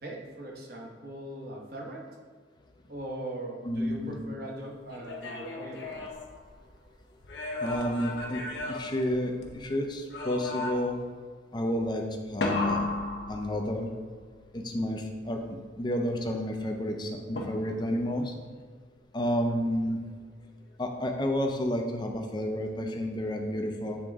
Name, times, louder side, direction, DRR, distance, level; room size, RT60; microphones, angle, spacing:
voice 1, 0.0-2.1 2.9-6.1, right 1 dB, 50° right, -1 dB, 1.1 m, -40 dB
voice 2, 3.6-4.2 7.6-11.0 11.5-12.9 13.3-13.9 14.5-18.3 19.1-20.0 20.8-24.0, equal, 25° left, 3 dB, 0.6 m, -31 dB
sound 1, 4.9-6.8 7.2-9.7 10.1-11.1 12.4-14.0 17.4-18.0, left 2 dB, 65° left, 0.8 m, -34 dB
8.6 x 3.6 x 3.5 m, 1.5 s
head